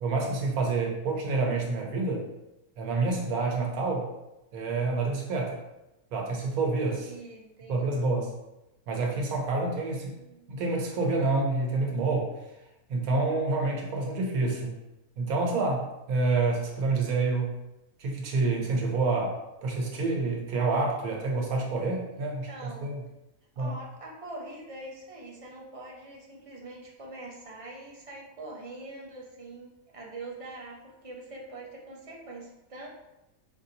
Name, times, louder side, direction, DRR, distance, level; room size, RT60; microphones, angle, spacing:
voice 1, 0.0-2.3 2.8-4.1 4.5-5.6 6.1-7.1 7.7-8.3 8.9-10.1 10.5-12.3 12.9-14.7 15.2-17.5 18.0-23.0 23.6-23.7, right 3 dB, 85° right, 0 dB, 1.3 m, -28 dB
voice 2, 7.0-8.0 9.9-10.5 22.5-23.0 23.6-32.9, right 2 dB, 35° right, -3 dB, 0.5 m, -44 dB
5.3 x 2.7 x 2.6 m, 0.94 s
omnidirectional pair, 1.5 m